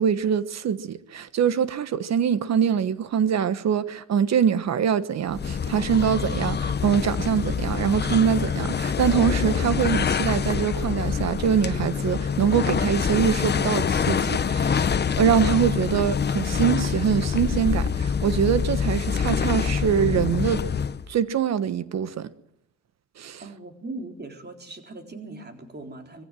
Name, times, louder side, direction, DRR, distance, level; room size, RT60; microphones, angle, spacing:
voice 1, 0.0-14.9 15.2-20.6 21.1-22.3 23.2-23.4, right 8 dB, 60° right, 1.3 m, -24 dB
sound 1, 5.3-21.1, left 6 dB, 35° left, 1.0 m, -25 dB
voice 2, 23.4-26.2, right 2 dB, 35° right, 4.0 m, -39 dB
22.5 x 15.5 x 7.7 m
cardioid pair, 90°, 30 cm